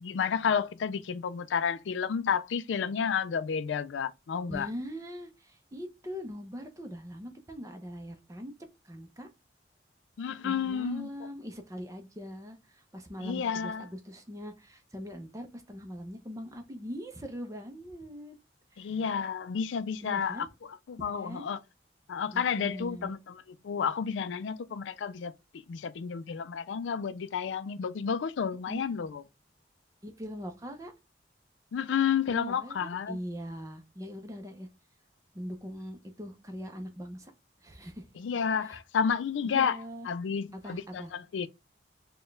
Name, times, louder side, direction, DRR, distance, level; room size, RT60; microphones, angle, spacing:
voice 1, 0.0-4.7 10.2-11.1 13.2-13.9 18.8-20.5 20.9-21.6 22.1-25.3 25.7-29.2 31.7-33.2 38.2-39.8 40.1-41.5, left 7 dB, 90° left, 0.4 m, -31 dB
voice 2, 4.5-8.5 8.8-9.3 10.4-18.4 18.7-18.9 20.0-20.5 21.1-21.5 22.3-23.1 28.7-29.1 30.0-30.9 32.3-34.7 35.3-37.3 37.6-38.1 38.6-38.8 39.4-40.1 40.5-41.1, equal, 20° right, 0.6 m, -41 dB
4.3 x 2.3 x 3.1 m
head